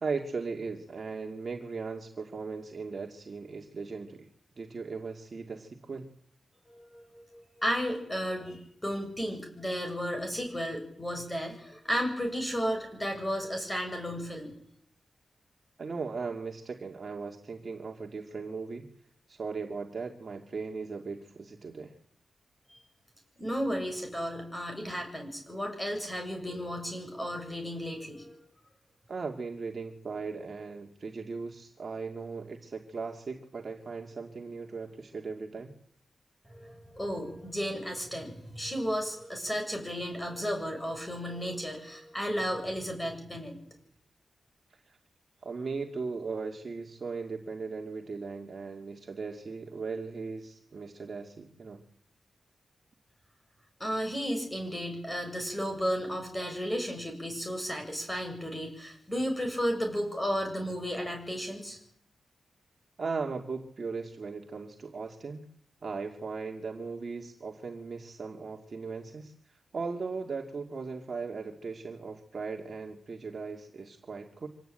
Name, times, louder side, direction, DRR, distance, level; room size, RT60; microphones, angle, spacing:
voice 1, 0.0-4.3 4.6-6.1 15.8-18.8 19.3-21.9 29.1-35.7 44.7-45.0 45.4-51.8 63.0-65.4 65.8-74.5, right 4 dB, 50° right, 2 dB, 2.3 m, -38 dB
voice 2, 6.7-14.5 22.7-22.8 23.4-28.4 36.5-43.5 53.8-61.8, equal, 15° left, 4 dB, 7.5 m, -33 dB
25.5 x 18.0 x 9.0 m, 0.70 s
wide cardioid pair, 110°, 0 cm